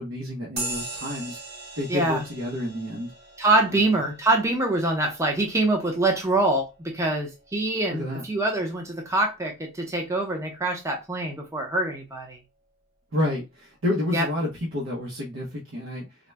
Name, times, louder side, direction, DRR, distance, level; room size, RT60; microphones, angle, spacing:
voice 1, 0.0-1.4 1.8-3.1 7.9-8.2 13.1-16.0, left 1 dB, 70° right, -3 dB, 0.9 m, -29 dB
sound 1, 0.6-8.5, right 2 dB, 50° right, 1.7 m, -40 dB
voice 2, 1.9-2.2 3.4-6.6 6.9-12.4 14.1-14.3, right 2 dB, 15° right, 2 dB, 0.6 m, -24 dB
3.8 x 2.1 x 3.4 m, 0.26 s
head